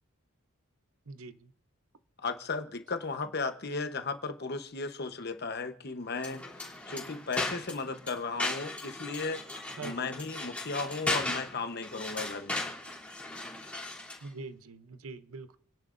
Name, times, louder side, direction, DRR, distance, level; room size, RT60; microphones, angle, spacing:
voice 1, 1.1-1.5 9.8-10.1 14.2-15.6, right 3 dB, 75° right, 0.8 m, -43 dB
voice 2, 2.2-9.4 9.8-12.6, left 4 dB, 45° left, 1.0 m, -35 dB
sound 1, 6.1-14.3, left 2 dB, 5° left, 3.1 m, -37 dB
29.5 x 10.5 x 2.6 m
head